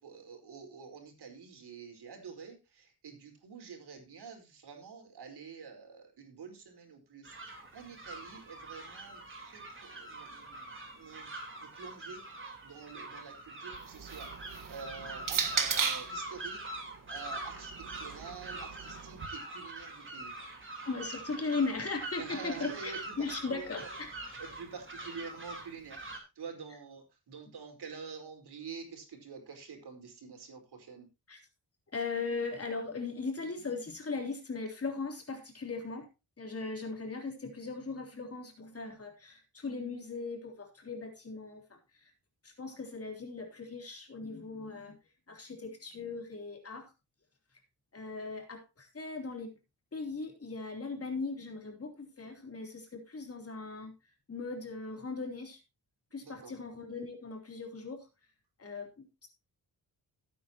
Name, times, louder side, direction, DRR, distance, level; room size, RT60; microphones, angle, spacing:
voice 1, 0.0-7.3 7.7-11.3 11.6-12.2 12.6-16.6 17.1-20.3 22.2-23.9 24.4-31.1 42.6-42.8 56.2-56.5, right 5 dB, 85° right, 4 dB, 4.7 m, -47 dB
sound 1, 7.2-26.2, right 2 dB, 30° right, 3.9 m, -44 dB
sound 2, 13.7-16.2 17.1-19.3, right 6 dB, 55° right, 1.7 m, -36 dB
voice 2, 20.8-24.1 31.3-31.4 31.9-36.1 36.4-42.1 42.4-45.0 45.3-46.9 47.9-49.5 49.9-53.9 54.3-55.6 56.1-58.1 58.6-59.3, left 4 dB, 35° left, 2 dB, 3.5 m, -38 dB
17.0 x 9.2 x 3.0 m, 0.26 s
wide cardioid pair, 155°, 38 cm